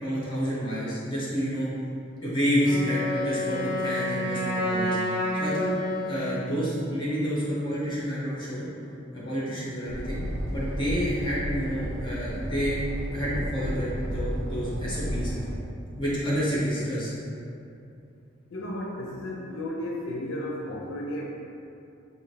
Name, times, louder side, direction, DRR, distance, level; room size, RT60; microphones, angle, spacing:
voice 1, 0.0-1.7 2.2-5.0 5.3-5.8 6.1-8.7 9.1-10.2 10.5-12.8 13.1-15.3 16.0-17.1, equal, 25° left, -8 dB, 1.2 m, -29 dB
Wind instrument woodwind instrument, 2.6-6.6, left 1 dB, 25° right, 1.1 m, -29 dB
sound 1, 9.9-15.6, equal, 75° right, 0.5 m, -33 dB
voice 2, 18.5-21.2, left 1 dB, 90° left, -2 dB, 0.5 m, -33 dB
4.5 x 2.6 x 3.2 m, 2.7 s
head